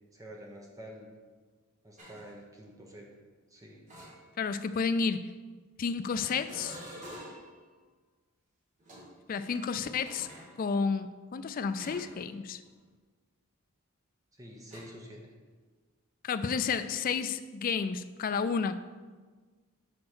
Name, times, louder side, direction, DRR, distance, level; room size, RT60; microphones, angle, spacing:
voice 1, 0.1-1.1 1.8-3.1 3.5-3.8 14.3-15.2, equal, 15° right, -1 dB, 0.8 m, -48 dB
sound 1, 2.0-2.3 3.9-4.6 6.2-7.6 8.8-10.5 11.8-12.3 12.6-12.9 14.7-14.8, equal, 35° right, 1.5 m, -48 dB
voice 2, 4.4-5.3 5.8-6.8 9.3-10.3 10.6-12.6 16.2-18.8, left 5 dB, 40° left, 12 dB, 0.3 m, -31 dB
6.6 x 4.2 x 6.1 m, 1.4 s
head